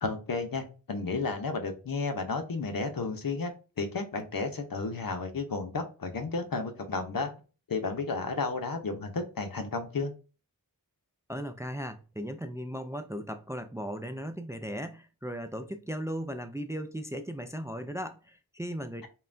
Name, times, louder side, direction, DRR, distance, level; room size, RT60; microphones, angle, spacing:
voice 1, 0.0-3.5 3.8-7.3 7.7-10.1, left 4 dB, 70° left, 0.7 m, -32 dB
voice 2, 11.3-19.1, equal, 10° right, 0.4 m, -37 dB
5.5 x 2.2 x 2.5 m
wide cardioid pair, 65°, 36 cm